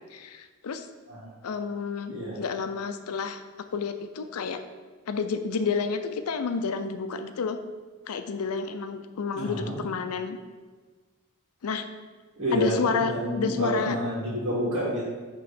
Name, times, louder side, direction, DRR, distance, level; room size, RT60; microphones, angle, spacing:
voice 1, 0.1-0.9 1.4-3.4 3.7-4.6 5.1-7.6 8.1-10.4 11.6-11.9 12.5-14.0, left 5 dB, 90° left, 9 dB, 0.5 m, -30 dB
voice 2, 9.3-9.8 12.4-15.0, equal, 55° right, -7 dB, 1.6 m, -28 dB
6.9 x 3.1 x 5.0 m, 1.4 s
head